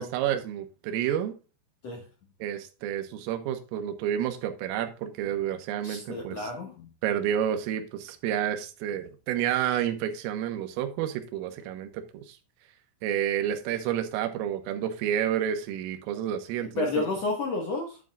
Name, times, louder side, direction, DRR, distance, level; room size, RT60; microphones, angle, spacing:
voice 1, 0.0-1.3 2.4-6.5 7.0-12.4 13.0-17.0, right 10 dB, 85° right, 3.7 m, -30 dB
voice 2, 5.8-6.9 16.8-18.0, left 3 dB, 90° left, 1.4 m, -30 dB
9.6 x 8.9 x 2.4 m
omnidirectional pair, 5.9 m